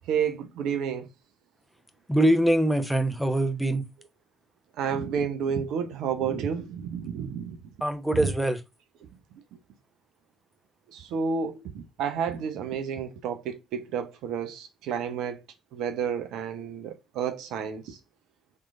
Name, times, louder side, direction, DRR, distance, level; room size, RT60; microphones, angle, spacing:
voice 1, 0.1-1.1 4.8-7.6 8.1-8.3 10.9-15.4 15.7-18.0, right 7 dB, 75° right, 0.7 m, -30 dB
voice 2, 2.1-3.8 7.8-8.6, right 1 dB, ahead, 0.9 m, -23 dB
3.8 x 3.2 x 3.5 m
hypercardioid pair, 45°, 0 cm